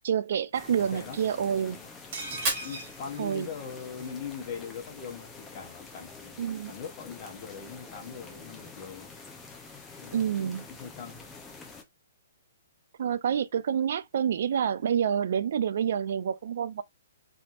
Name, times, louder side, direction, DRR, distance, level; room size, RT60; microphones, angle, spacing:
voice 1, 0.0-1.8 3.2-3.5 6.4-6.7 10.1-10.7 13.0-16.8, right 8 dB, 60° right, 0.4 m, -28 dB
sound 1, 0.5-11.8, left 4 dB, 10° left, 0.6 m, -47 dB
voice 2, 0.9-1.9 2.6-6.4 6.7-9.1 10.0-11.3, left 7 dB, 35° left, 1.1 m, -41 dB
sound 2, 2.1-4.1 4.4-4.5 4.7-4.9, right 2 dB, 45° right, 1.3 m, -40 dB
Fire, 2.3-4.3, right 3 dB, 25° right, 1.5 m, -36 dB
3.4 x 2.8 x 2.4 m
hypercardioid pair, 155°, 0 cm